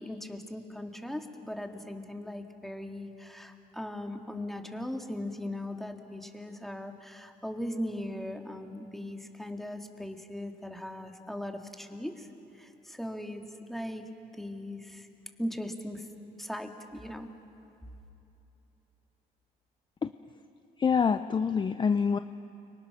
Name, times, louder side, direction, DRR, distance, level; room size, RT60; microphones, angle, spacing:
voice 1, 0.0-12.3 12.5-13.4 13.7-14.0 14.3-15.1 15.4-16.1 16.4-17.3, left 1 dB, ahead, 3 dB, 2.1 m, -39 dB
voice 2, 20.8-22.2, left 6 dB, 25° left, 10 dB, 0.6 m, -26 dB
30.0 x 24.5 x 6.2 m, 2.8 s
cardioid pair, 110°, 17 cm